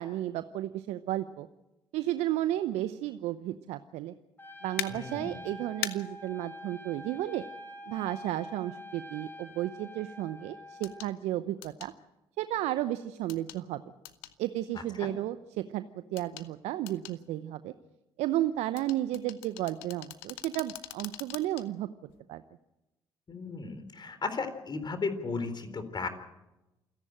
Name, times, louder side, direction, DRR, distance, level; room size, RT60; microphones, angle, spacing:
voice 1, 0.0-1.5 1.9-4.1 4.6-7.4 7.9-11.9 12.4-13.8 14.4-17.7 18.2-21.9 22.3-22.4, right 14 dB, 70° right, 13 dB, 0.8 m, -33 dB
Trumpet, 4.4-11.1, left 1 dB, 20° left, 4.0 m, -46 dB
sound 1, 4.8-4.9 5.8-5.9 7.9-8.0 10.8-11.1 11.6-11.9 13.3-13.6 14.0-14.3 16.2-16.5 16.9-17.2 18.8-21.6 22.1-22.2, left 15 dB, 85° left, 1.0 m, -40 dB
voice 2, 4.9-5.4 15.0-15.1 23.3-26.1, left 4 dB, 40° left, 10 dB, 3.9 m, -35 dB
28.0 x 11.0 x 9.0 m, 0.96 s
hypercardioid pair, 50°, 12 cm